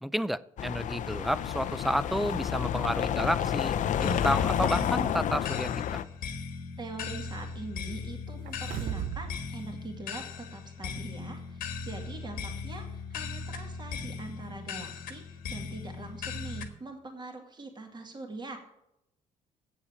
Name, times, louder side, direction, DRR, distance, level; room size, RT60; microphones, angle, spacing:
voice 1, 0.0-3.7 4.0-5.8, equal, ahead, 0.4 m, -31 dB
sound 1, 0.6-6.0, left 9 dB, 60° left, 0.6 m, -30 dB
sound 2, 4.0-16.7, left 5 dB, 80° left, 1.3 m, -39 dB
voice 2, 6.8-18.6, right 2 dB, 30° right, 2.2 m, -43 dB
sound 3, 8.5-9.3 9.7-9.8, right 12 dB, 80° right, 0.6 m, -35 dB
8.3 x 7.0 x 8.5 m
cardioid pair, 80°, 14 cm